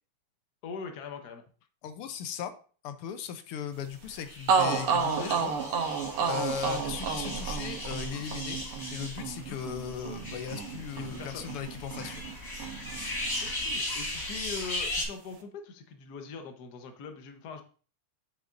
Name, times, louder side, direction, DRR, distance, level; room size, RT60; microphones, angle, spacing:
voice 1, 0.6-1.4 5.1-5.5 6.2-6.4 9.5-9.6 10.9-11.5 13.4-17.6, left 5 dB, 55° left, 6 dB, 1.4 m, -42 dB
voice 2, 1.8-2.5 2.8-5.5 6.2-8.6 8.9-12.2, left 8 dB, 85° left, 9 dB, 1.6 m, -37 dB
sound 1, 4.1-4.2 4.5-12.3 12.6-13.8, right 5 dB, 85° right, 1.9 m, -31 dB
sound 2, 4.2-15.0, left 1 dB, 40° left, 3.7 m, -37 dB
7.9 x 6.9 x 2.5 m, 0.39 s
omnidirectional pair, 2.4 m